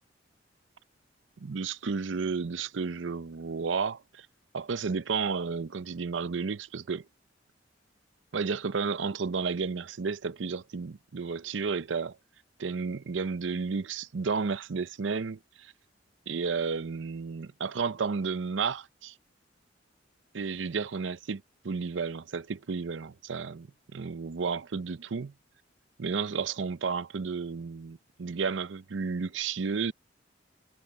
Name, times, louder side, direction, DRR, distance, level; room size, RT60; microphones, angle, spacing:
voice 1, 1.4-4.3 4.5-7.0 8.3-12.2 12.6-15.7 16.3-19.1 20.3-23.7 23.9-25.3 26.0-29.9, right 5 dB, 90° right, 0.6 m, -32 dB
head